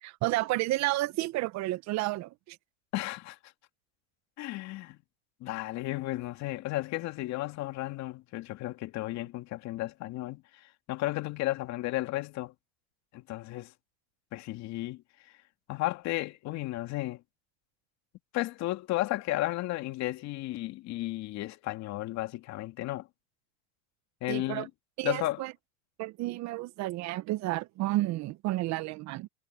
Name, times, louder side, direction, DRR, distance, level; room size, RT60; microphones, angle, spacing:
voice 1, 0.0-2.6 24.3-24.7 25.0-25.5 26.0-29.3, right 18 dB, 50° right, 1.4 m, -31 dB
voice 2, 2.9-3.4 4.4-5.0 5.4-10.4 10.9-12.5 13.1-13.7 14.3-15.0 15.7-17.2 18.3-23.1 24.2-24.7 25.0-25.4, left 17 dB, 55° left, 2.5 m, -33 dB
supercardioid pair, 105°, 34 cm